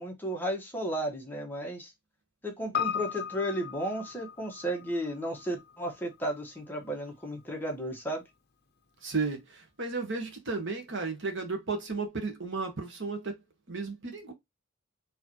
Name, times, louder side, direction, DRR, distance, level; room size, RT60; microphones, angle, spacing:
voice 1, 0.0-1.9 2.4-8.2, right 1 dB, 10° left, 1.3 m, -34 dB
Piano, 2.7-7.3 7.5-7.6, left 8 dB, 50° left, 0.7 m, -37 dB
voice 2, 9.0-13.4 13.7-14.3, right 4 dB, 55° right, 1.4 m, -34 dB
4.6 x 3.3 x 2.9 m
head